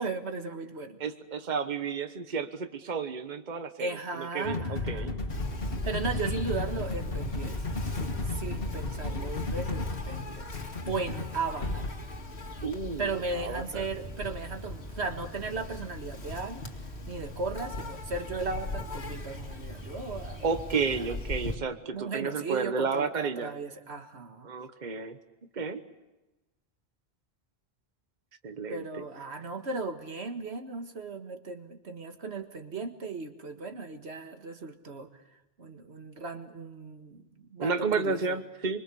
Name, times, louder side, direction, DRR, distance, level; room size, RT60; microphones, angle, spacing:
voice 1, 0.0-1.0 3.8-5.2 5.8-7.6 8.0-10.5 10.9-11.9 13.0-16.6 17.1-20.4 21.0-21.2 21.9-24.5 28.7-35.1 35.6-38.4, right 4 dB, 90° right, 6 dB, 2.0 m, -36 dB
voice 2, 1.0-5.1 12.6-13.8 20.4-23.5 24.4-25.2 25.5-25.8 28.4-29.0 37.6-38.8, right 5 dB, 45° right, 9 dB, 1.3 m, -32 dB
sound 1, 4.4-11.9, left 2 dB, 60° left, 2.0 m, -33 dB
Insect, 5.3-21.5, left 2 dB, 90° left, 2.5 m, -40 dB
25.0 x 24.5 x 7.0 m, 1.0 s
omnidirectional pair, 1.1 m